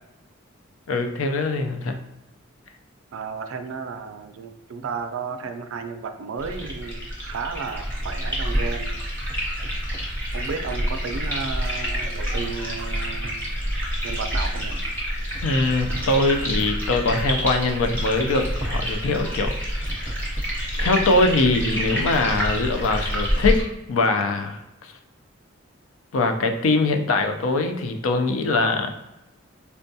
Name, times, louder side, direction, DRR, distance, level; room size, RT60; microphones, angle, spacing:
voice 1, 0.9-2.0 15.4-20.1 20.8-23.6 23.9-24.9 26.1-28.9, left 3 dB, 80° left, 5 dB, 0.4 m, -22 dB
voice 2, 3.1-9.0 10.3-13.4 14.0-14.8, right 5 dB, 75° right, 7 dB, 0.4 m, -33 dB
sound 1, 6.4-23.6, equal, 10° left, 0.9 m, -27 dB
4.3 x 2.2 x 2.7 m, 0.98 s
head